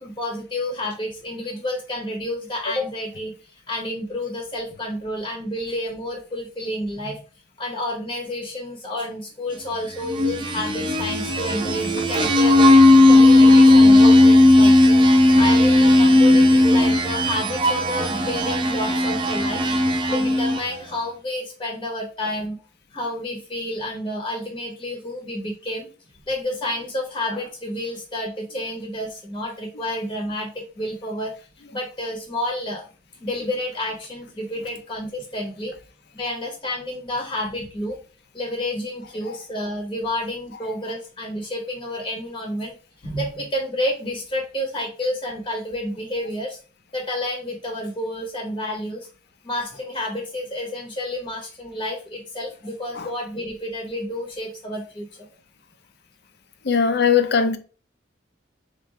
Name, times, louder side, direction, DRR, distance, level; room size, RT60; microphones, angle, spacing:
voice 1, 0.0-7.2 7.6-12.7 13.1-15.0 15.3-19.6 20.1-22.6 22.9-25.9 26.3-31.3 31.7-32.8 33.2-35.7 36.1-38.0 38.3-42.7 43.0-46.6 46.9-49.1 49.4-55.3, left 1 dB, 25° left, 0.8 m, -30 dB
sound 1, 9.9-20.8, left 2 dB, 25° right, 0.5 m, -15 dB
voice 2, 56.6-57.6, left 6 dB, 55° left, 0.5 m, -20 dB
4.4 x 2.5 x 3.1 m
head